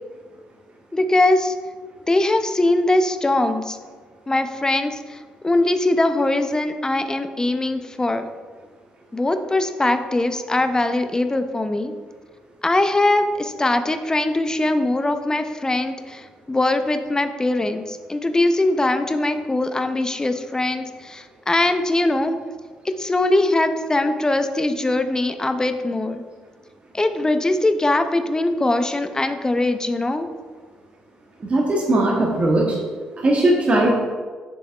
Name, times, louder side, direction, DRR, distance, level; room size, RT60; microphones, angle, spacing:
voice 1, 0.9-1.6 2.1-3.8 4.3-8.2 9.1-11.9 12.6-22.4 23.0-26.2 26.9-30.3, left 2 dB, 20° left, 9 dB, 0.5 m, -21 dB
voice 2, 31.4-32.8 33.2-33.9, right 1 dB, 35° right, -2 dB, 1.1 m, -18 dB
6.9 x 6.7 x 2.4 m, 1.5 s
figure-of-eight pair, 40°, 4 cm